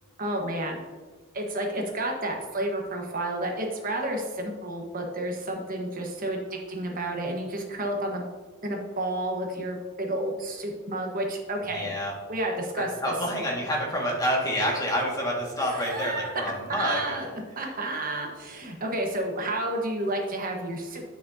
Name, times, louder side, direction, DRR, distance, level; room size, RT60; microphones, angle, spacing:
voice 1, 0.2-0.8 1.3-8.2 8.6-11.9 12.3-13.1 15.7-16.4 16.7-21.0, right 1 dB, 40° right, 1 dB, 1.2 m, -31 dB
voice 2, 11.7-12.1 12.8-17.0, equal, 15° left, -2 dB, 1.8 m, -28 dB
9.8 x 6.2 x 2.7 m, 1.4 s
head